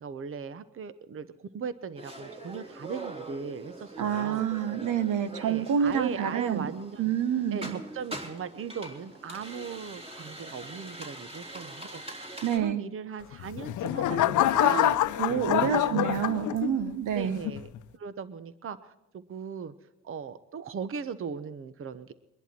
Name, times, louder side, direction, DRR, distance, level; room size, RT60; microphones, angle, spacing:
voice 1, 0.0-4.4 5.3-7.0 7.5-12.3 12.5-15.1 15.6-16.5 17.1-19.7 20.0-22.1, right 6 dB, 45° right, 14 dB, 1.0 m, -38 dB
sound 1, 2.0-12.6, right 2 dB, 20° right, 3.5 m, -43 dB
voice 2, 4.0-6.7 7.0-7.8 12.4-12.8 14.6-17.4, right 8 dB, 80° right, 12 dB, 1.3 m, -28 dB
sound 2, 13.3-16.9 17.4-17.8, left 13 dB, 80° left, 0.8 m, -26 dB
23.0 x 11.0 x 4.4 m, 0.99 s
cardioid pair, 90°, 30 cm